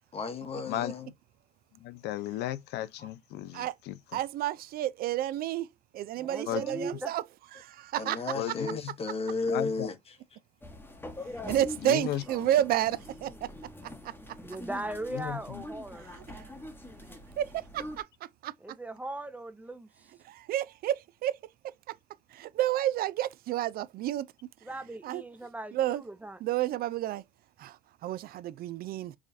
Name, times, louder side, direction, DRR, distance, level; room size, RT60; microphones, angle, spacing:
voice 1, 0.1-1.1 3.0-3.1 8.0-10.2, left 3 dB, 35° left, 1.0 m, -33 dB
voice 2, 1.8-3.9 6.5-6.7 8.3-8.9 9.5-9.9 11.8-12.2 15.1-15.6, left 13 dB, 80° left, 0.6 m, -35 dB
voice 3, 4.1-5.7 5.9-7.2 7.5-8.2 8.5-8.6 11.5-13.5 13.8-14.1 16.3-16.5 17.4-18.0 18.4-18.5 20.2-21.4 21.6-21.9 22.3-24.3 25.0-25.2 25.7-26.0 26.4-27.2 27.6-29.2, right 12 dB, 65° right, 0.4 m, -30 dB
voice 4, 6.2-7.1 14.4-16.1 18.6-19.9 24.6-26.4, right 1 dB, 10° right, 0.5 m, -38 dB
sound 1, 10.6-18.0, left 1 dB, 15° left, 0.9 m, -44 dB
4.8 x 2.3 x 2.6 m
cardioid pair, 110°, 17 cm